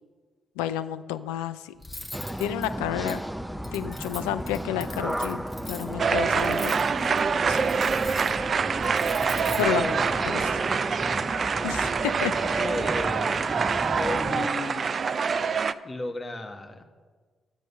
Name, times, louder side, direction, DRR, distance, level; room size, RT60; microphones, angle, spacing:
voice 1, 0.6-1.7 2.4-3.2 3.7-6.7 7.5-7.6 9.6-9.9 10.2-10.4 11.6-12.3, left 11 dB, 80° left, 11 dB, 0.4 m, -30 dB
Cutlery silverware, 1.8-10.5, left 1 dB, 10° left, 1.8 m, -43 dB
sound 1, 2.1-14.5, equal, 5° right, 0.6 m, -35 dB
sound 2, 6.0-15.7, right 5 dB, 50° right, 0.5 m, -25 dB
voice 2, 9.7-10.1 12.2-13.4 13.7-14.9 15.8-16.8, left 2 dB, 35° left, 5 dB, 1.6 m, -34 dB
11.5 x 7.5 x 6.5 m, 1.4 s
hypercardioid pair, 40°, 0 cm